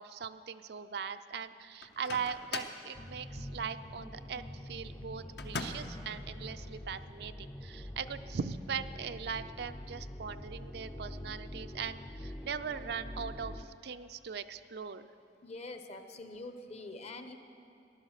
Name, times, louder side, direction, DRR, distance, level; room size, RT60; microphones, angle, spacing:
voice 1, 0.0-15.1, right 6 dB, 65° right, 10 dB, 0.4 m, -40 dB
Microwave oven, 1.8-2.9 5.4-6.0, left 4 dB, 65° left, 0.8 m, -40 dB
sound 1, 2.9-13.7, left 1 dB, 15° left, 0.4 m, -45 dB
voice 2, 15.4-17.4, left 2 dB, 40° left, 8 dB, 0.8 m, -45 dB
15.0 x 11.0 x 6.5 m, 2.6 s
head